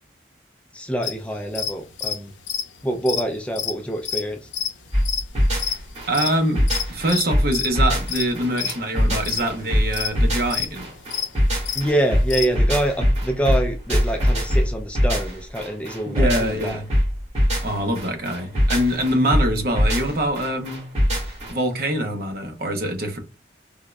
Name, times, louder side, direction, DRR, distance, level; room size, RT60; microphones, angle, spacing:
voice 1, 0.7-2.3 2.8-4.5 11.7-16.8, right 1 dB, 5° left, 0.3 m, -25 dB
sound 1, 1.0-12.5, left 8 dB, 90° left, 0.5 m, -28 dB
sound 2, 4.9-21.5, equal, 35° right, 1.8 m, -22 dB
voice 2, 6.1-10.9 16.1-16.9 17.6-20.8 21.5-23.2, right 1 dB, 55° right, 0.7 m, -24 dB
3.5 x 3.0 x 2.2 m
head